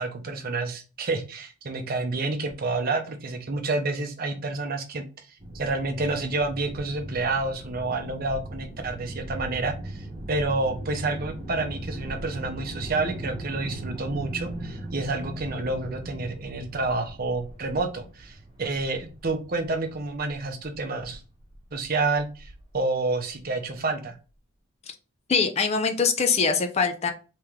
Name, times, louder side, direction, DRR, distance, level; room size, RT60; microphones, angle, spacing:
voice 1, 0.0-21.2 21.7-24.2, right 3 dB, 45° right, 5 dB, 0.6 m, -29 dB
sound 1, 5.4-22.8, right 1 dB, 25° right, 1.1 m, -39 dB
voice 2, 25.3-27.1, left 5 dB, 30° left, 7 dB, 0.4 m, -23 dB
3.6 x 3.0 x 3.0 m, 0.34 s
head